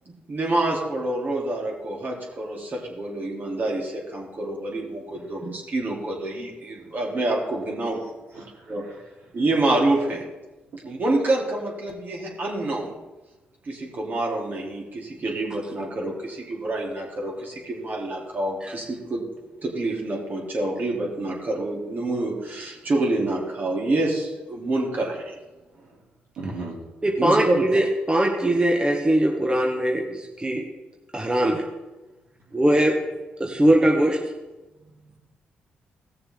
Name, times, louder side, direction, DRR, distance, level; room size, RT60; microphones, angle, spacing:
voice 1, 0.3-8.0 8.3-8.9 9.3-10.2 10.8-12.9 13.6-19.2 19.6-25.3 27.2-27.7, right 2 dB, 50° right, -2 dB, 3.4 m, -27 dB
voice 2, 8.3-9.0 10.7-10.8 25.7-26.0 26.4-26.8 33.4-33.7 34.8-35.3, right 3 dB, 80° right, -3 dB, 2.8 m, -39 dB
voice 3, 27.0-30.6 31.1-31.6 32.5-32.9 33.4-34.2, right 1 dB, 25° right, 0 dB, 1.6 m, -21 dB
17.5 x 6.7 x 3.8 m, 1.1 s
supercardioid pair, 55°, 4 cm